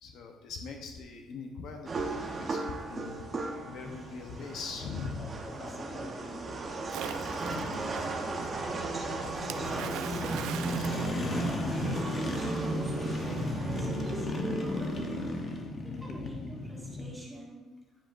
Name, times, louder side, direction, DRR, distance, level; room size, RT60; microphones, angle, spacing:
voice 1, 0.0-3.2 3.7-5.4 7.4-7.9 9.5-9.6 11.2-11.5 11.8-12.0 15.8-16.4, left 4 dB, 60° left, 3 dB, 0.8 m, -41 dB
sound 1, 1.9-15.4, right 3 dB, 25° right, 0.9 m, -36 dB
sound 2, 2.2-17.2, left 2 dB, 30° left, 0.8 m, -37 dB
voice 2, 5.5-6.5 7.0-10.5 11.1-15.3 15.8-17.7, equal, 5° right, -4 dB, 1.9 m, -47 dB
Splash splatter, 6.9-7.8 9.5-11.9, right 10 dB, 85° right, 0.4 m, -41 dB
10.0 x 7.6 x 2.5 m, 1.1 s
cardioid pair, 155°, 0 cm